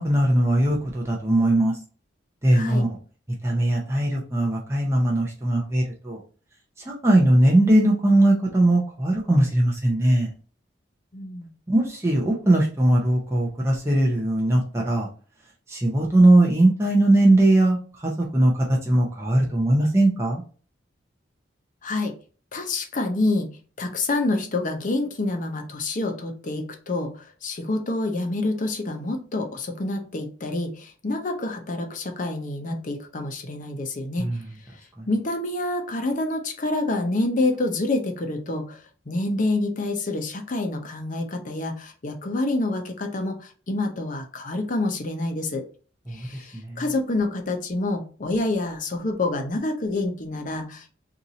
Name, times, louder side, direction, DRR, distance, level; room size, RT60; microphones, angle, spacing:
voice 1, 0.0-1.8 2.4-2.9 3.4-6.2 6.9-10.3 11.7-15.1 15.7-20.4 34.2-34.4 35.0-35.1 46.1-46.3 46.6-46.8, right 1 dB, 15° right, -2 dB, 0.6 m, -20 dB
voice 2, 2.5-2.9 11.1-11.5 21.8-22.1 22.5-23.5 23.8-34.3 35.1-45.6 46.1-51.0, left 2 dB, 45° left, 4 dB, 0.7 m, -27 dB
2.8 x 2.5 x 3.9 m, 0.39 s
head